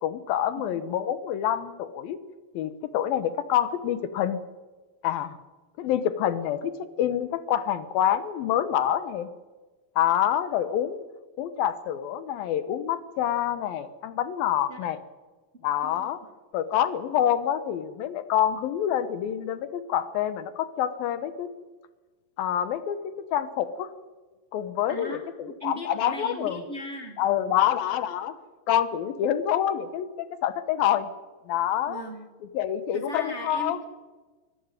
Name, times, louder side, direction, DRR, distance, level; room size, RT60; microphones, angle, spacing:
voice 1, 0.0-2.2 2.5-4.4 5.0-5.4 5.8-6.7 7.0-9.3 10.0-11.0 11.4-15.0 15.6-16.2 16.5-21.5 22.4-23.9 24.5-26.6 27.2-28.4 28.7-31.1 31.5-32.0 32.5-33.8, left 10 dB, 80° left, 13 dB, 2.9 m, -27 dB
voice 2, 24.9-27.2 31.9-32.3 32.9-33.8, right 1 dB, 30° right, 3 dB, 1.4 m, -38 dB
24.0 x 13.0 x 9.1 m, 1.3 s
omnidirectional pair, 4.1 m